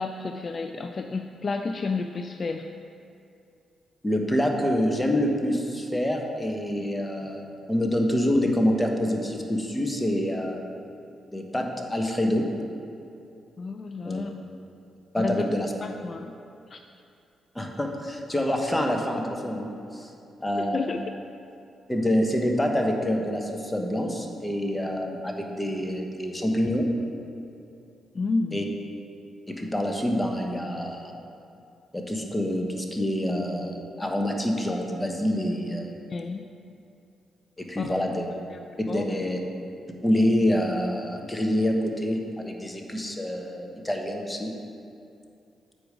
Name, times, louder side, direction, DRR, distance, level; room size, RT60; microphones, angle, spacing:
voice 1, 0.0-2.7 13.6-14.3 15.2-15.4 15.8-16.4 16.7-16.8 20.6-21.0 28.1-28.7 36.1-36.5 37.8-38.0 38.5-38.6 38.9-39.2, left 4 dB, 45° left, 6 dB, 0.3 m, -31 dB
voice 2, 4.0-10.6 11.3-12.5 14.0-14.2 15.1-15.7 17.5-20.1 20.4-21.0 21.9-26.9 28.5-28.6 29.5-31.1 31.9-35.9 37.6-38.3 38.9-39.4 40.0-44.6, equal, 15° left, 2 dB, 1.0 m, -26 dB
7.9 x 5.0 x 4.9 m, 2.6 s
supercardioid pair, 55°, 0 cm